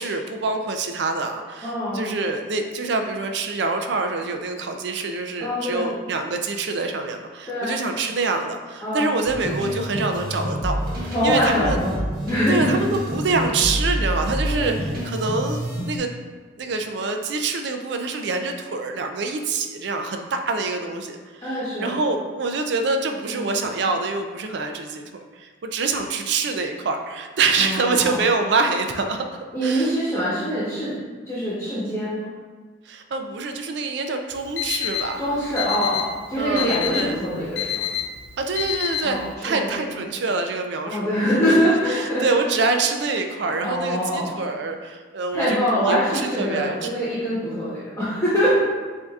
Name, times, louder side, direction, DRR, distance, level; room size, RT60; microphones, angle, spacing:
voice 1, 0.0-11.8 12.5-16.1 16.6-29.9 32.9-35.2 36.4-37.2 38.4-41.1 41.5-41.6 41.9-45.6 45.8-46.8, right 3 dB, 65° right, 5 dB, 0.4 m, -26 dB
voice 2, 1.6-2.0 5.4-5.9 7.5-7.7 8.8-9.1 11.1-12.8 14.4-14.8 21.4-21.9 23.3-23.5 27.6-28.2 29.5-30.9 31.2-32.3 35.2-37.8 39.0-39.9 40.8-42.3 43.6-44.3 45.3-48.6, equal, 15° left, -11 dB, 1.1 m, -24 dB
sound 1, 9.2-16.0, equal, 50° right, 1.1 m, -28 dB
Alarm, 34.3-39.3, left 11 dB, 65° left, 0.4 m, -29 dB
7.7 x 2.7 x 2.4 m, 1.4 s
head